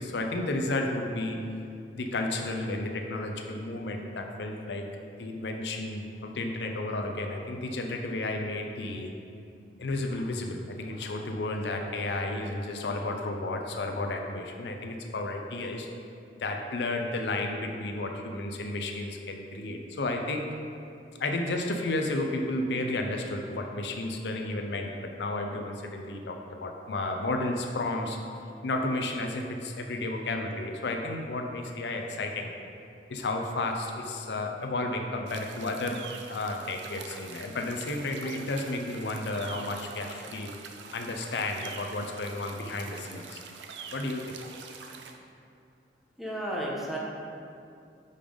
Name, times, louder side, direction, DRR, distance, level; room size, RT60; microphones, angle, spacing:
voice 1, 0.0-1.4 1.9-4.9 5.2-9.1 9.8-15.9 16.4-20.5 21.2-28.2 28.6-32.6 33.1-36.0 36.3-40.5 40.9-43.4 43.9-44.3, left 2 dB, 70° left, 3 dB, 0.6 m, -32 dB
sound 1, 35.3-45.2, right 5 dB, 80° right, 0.5 m, -45 dB
voice 2, 46.2-47.0, right 1 dB, ahead, -4 dB, 0.9 m, -32 dB
5.3 x 5.1 x 5.2 m, 2.5 s
head